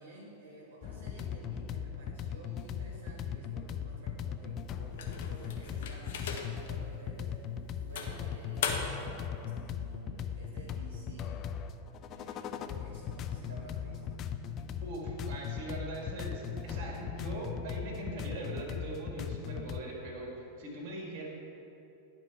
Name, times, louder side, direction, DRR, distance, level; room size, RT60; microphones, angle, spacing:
voice 1, 0.0-11.4 12.1-14.3, right 2 dB, 65° right, -5 dB, 1.2 m, -52 dB
sound 1, 0.8-19.8, left 8 dB, 35° left, 0.3 m, -39 dB
sound 2, 5.0-6.7 7.2-7.4 8.0-9.2, left 6 dB, 55° left, 0.7 m, -37 dB
voice 2, 14.8-21.3, right 2 dB, 45° right, -1 dB, 1.8 m, -41 dB
11.0 x 4.4 x 4.6 m, 2.9 s
figure-of-eight pair, 90°, 0 cm